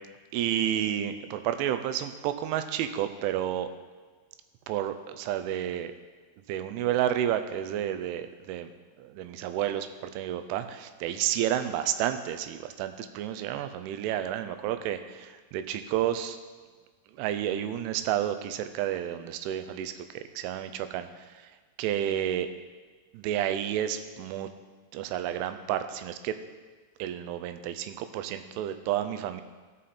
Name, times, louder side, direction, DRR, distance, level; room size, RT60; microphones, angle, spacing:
voice 1, 0.3-3.7 4.7-5.9 6.5-8.7 9.0-9.9 10.1-16.4 17.2-21.1 21.8-22.5 23.1-24.5 24.9-26.4 27.0-29.4, right 11 dB, 90° right, 9 dB, 3.1 m, -30 dB
16.5 x 5.8 x 4.2 m, 1.4 s
omnidirectional pair, 5.4 m